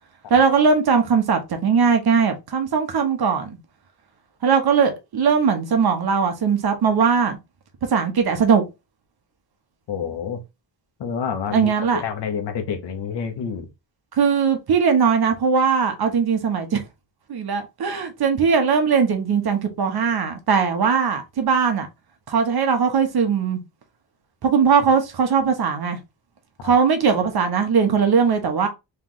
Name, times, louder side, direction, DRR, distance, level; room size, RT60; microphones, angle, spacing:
voice 1, 0.3-3.6 4.4-7.4 7.9-8.6 11.5-12.0 14.2-16.8 17.3-21.9 22.3-23.6 24.4-26.0 26.6-28.7, right 6 dB, 60° right, 1.0 m, -19 dB
voice 2, 9.9-10.4 11.0-11.7 12.0-13.7 26.6-26.7, left 7 dB, 70° left, 1.0 m, -28 dB
3.3 x 3.1 x 3.8 m
wide cardioid pair, 145°, 43 cm